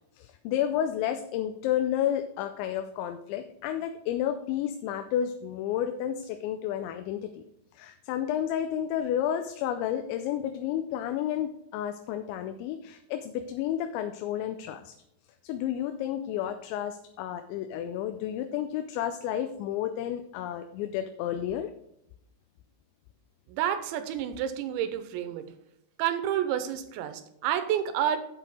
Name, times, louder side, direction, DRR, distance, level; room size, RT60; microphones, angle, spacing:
voice 1, 0.2-7.4 7.8-14.9 15.4-21.7, left 10 dB, 85° left, 8 dB, 2.9 m, -31 dB
voice 2, 23.5-25.5 26.0-28.2, right 10 dB, 85° right, 10 dB, 3.0 m, -29 dB
7.9 x 7.6 x 4.8 m, 0.81 s
omnidirectional pair, 5.2 m